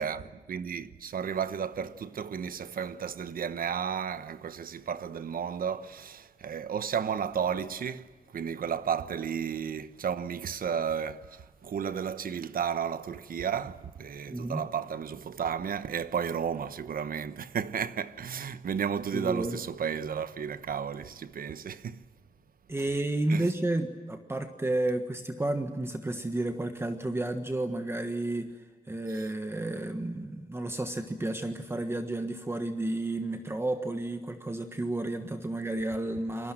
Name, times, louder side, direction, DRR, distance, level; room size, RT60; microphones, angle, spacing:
voice 1, 0.0-22.0 23.3-23.5 29.1-29.3, right 7 dB, 85° right, 1.1 m, -33 dB
voice 2, 14.3-14.6 19.1-19.6 22.7-28.5 28.9-36.5, right 2 dB, 15° right, 1.4 m, -31 dB
29.0 x 22.5 x 7.5 m
wide cardioid pair, 155°, 15 cm